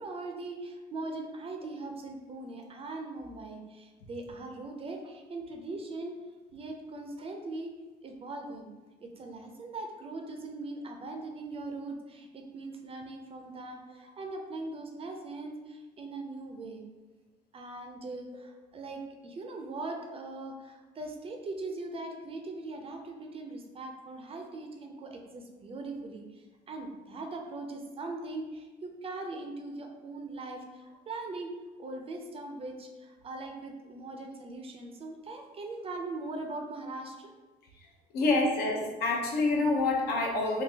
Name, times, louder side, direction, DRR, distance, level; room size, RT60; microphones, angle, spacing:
voice 1, 0.0-6.1 6.5-7.7 8.0-8.7 9.0-16.9 17.5-31.5 31.8-37.3, right 2 dB, 35° right, 3 dB, 0.5 m, -40 dB
voice 2, 38.1-40.6, left 3 dB, 70° left, 0 dB, 0.8 m, -27 dB
3.7 x 2.7 x 2.7 m, 1.2 s
cardioid pair, 110°, 17 cm